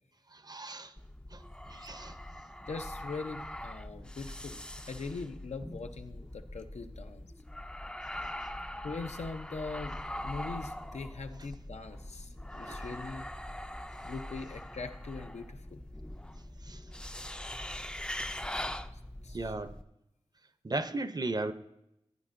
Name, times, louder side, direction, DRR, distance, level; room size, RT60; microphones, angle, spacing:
voice 1, 0.3-0.9 1.3-1.4 1.7-2.2 12.7-12.8 16.6-16.8 19.3-19.8 20.6-21.5, right 2 dB, 35° right, 0.6 m, -36 dB
sound 1, 1.0-19.8, left 1 dB, 10° left, 0.4 m, -42 dB
voice 2, 2.7-7.3 8.8-10.0 10.2-13.3 14.0-15.8 19.2-19.5, left 4 dB, 85° left, 0.6 m, -41 dB
16.0 x 9.2 x 2.5 m
wide cardioid pair, 60°, 11 cm